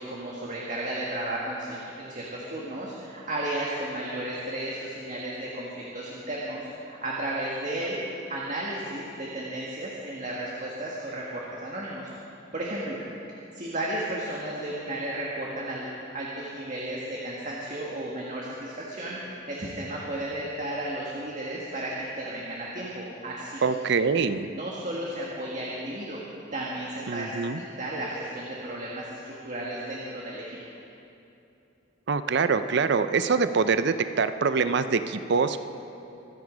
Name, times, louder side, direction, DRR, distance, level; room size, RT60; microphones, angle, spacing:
voice 1, 0.0-8.0 8.3-13.0 13.3-15.9 16.1-19.2 19.5-23.8 24.4-26.2 26.5-30.6, right 1 dB, 40° right, -4 dB, 1.7 m, -34 dB
voice 2, 23.6-24.5 27.1-27.6 32.1-35.6, right 5 dB, 55° right, 11 dB, 0.5 m, -24 dB
24.5 x 9.6 x 5.1 m, 2.8 s
head